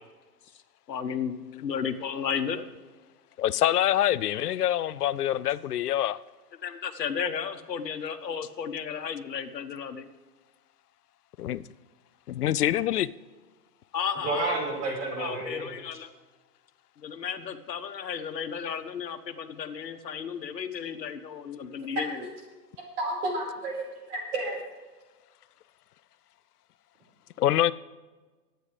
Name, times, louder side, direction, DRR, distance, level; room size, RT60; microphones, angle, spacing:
voice 1, 0.9-2.7 6.6-10.1 13.9-14.6 15.1-16.1 17.0-22.2, left 7 dB, 85° left, 1.3 m, -33 dB
voice 2, 3.4-6.2 11.4-11.6 12.3-13.1 27.4-27.7, left 12 dB, 65° left, 0.6 m, -25 dB
voice 3, 14.2-15.7 22.2-22.3 23.0-24.6, right 2 dB, 40° right, 4.7 m, -31 dB
22.5 x 9.2 x 3.3 m
hypercardioid pair, 145°, 49 cm